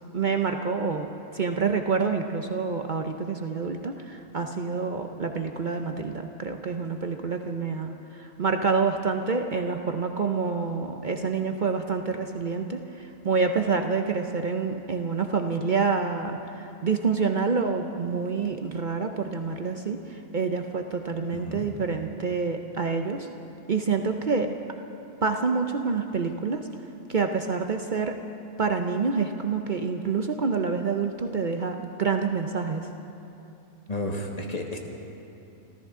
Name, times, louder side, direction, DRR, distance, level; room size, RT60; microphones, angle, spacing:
voice 1, 0.1-23.3 23.7-24.5 25.2-26.7 27.1-28.2 28.6-32.9, right 5 dB, 50° right, 5 dB, 0.6 m, -27 dB
voice 2, 21.3-21.7 33.9-34.8, left 1 dB, 30° left, 1 dB, 1.4 m, -32 dB
27.0 x 14.5 x 3.7 m, 2.9 s
omnidirectional pair, 1.5 m